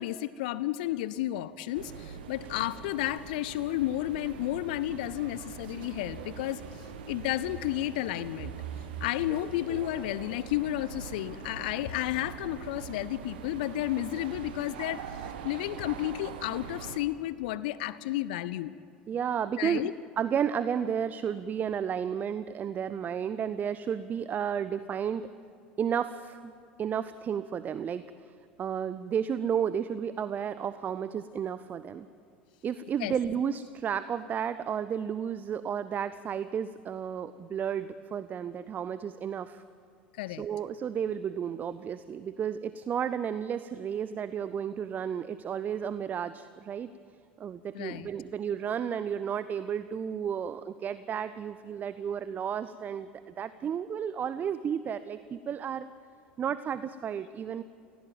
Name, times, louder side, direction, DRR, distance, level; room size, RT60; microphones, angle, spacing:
voice 1, 0.0-8.5 9.0-15.0 15.4-18.7 19.6-19.9 33.0-33.1 40.2-40.4 47.7-48.1, left 15 dB, 60° left, 17 dB, 0.5 m, -32 dB
sound 1, 1.7-17.0, right 7 dB, 65° right, 1.4 m, -42 dB
voice 2, 19.1-19.9 20.2-25.2 25.8-26.5 26.8-28.0 28.6-32.1 32.6-39.6 40.3-46.9 47.4-55.9 56.4-57.6, right 8 dB, 30° right, 14 dB, 0.6 m, -32 dB
18.5 x 16.0 x 9.2 m, 2.4 s
figure-of-eight pair, 70°, 5 cm